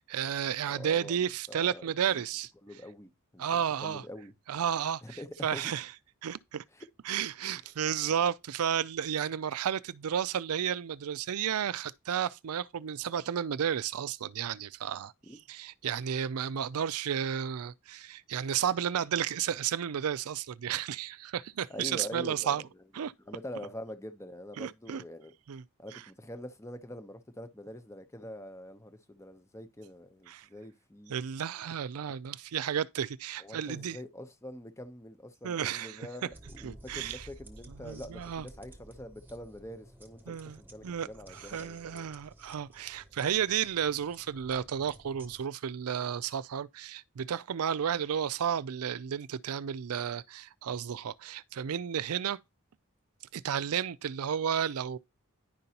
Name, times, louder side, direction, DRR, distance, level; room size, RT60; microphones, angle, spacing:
voice 1, 0.0-2.5 3.4-4.0 4.5-5.0 5.4-5.9 6.2-6.6 7.1-15.1 15.5-22.6 22.9-23.1 24.6-25.0 25.5-25.6 25.9-26.0 30.3-30.5 31.1-34.0 35.4-36.3 36.6-37.2 37.8-38.5 40.3-52.4 53.3-55.0, right 8 dB, 85° right, 0.4 m, -32 dB
voice 2, 0.6-1.2 1.5-2.2 2.6-4.3 5.0-5.7 6.7-6.9 15.2-15.4 21.7-22.8 23.2-25.3 25.8-31.1 33.4-42.1, left 1 dB, 15° left, 0.8 m, -45 dB
sound 1, 36.3-45.4, right 1 dB, 10° right, 1.1 m, -53 dB
10.5 x 5.3 x 2.9 m
head